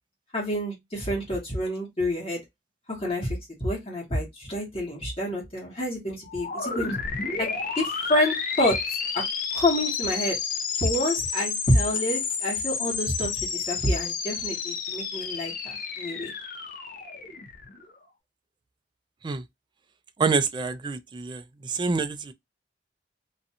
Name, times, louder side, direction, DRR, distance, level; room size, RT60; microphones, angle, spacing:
voice 1, 0.3-2.4 2.9-7.0 7.4-8.8 9.1-9.2 9.5-10.4 10.8-16.3, left 1 dB, 35° left, 1.1 m, -28 dB
sound 1, 6.2-17.9, left 5 dB, 50° left, 0.6 m, -31 dB
voice 2, 20.2-22.3, right 4 dB, 25° right, 0.3 m, -27 dB
2.5 x 2.3 x 2.7 m
head